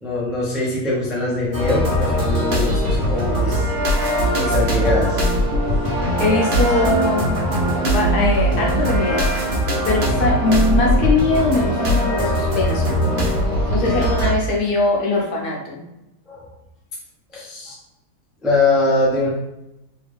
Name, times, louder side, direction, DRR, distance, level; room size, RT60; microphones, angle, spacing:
voice 1, 0.0-3.7 4.3-5.2 13.4-13.6 16.3-16.5 17.3-17.8 18.4-19.3, left 2 dB, ahead, -5 dB, 0.5 m, -22 dB
sound 1, 1.5-14.3, equal, 45° right, 0.8 m, -20 dB
voice 2, 6.2-7.4 7.9-9.3 9.9-13.0 13.7-15.8, left 2 dB, 85° left, -1 dB, 1.4 m, -21 dB
3.5 x 2.4 x 3.4 m, 0.93 s
omnidirectional pair, 1.6 m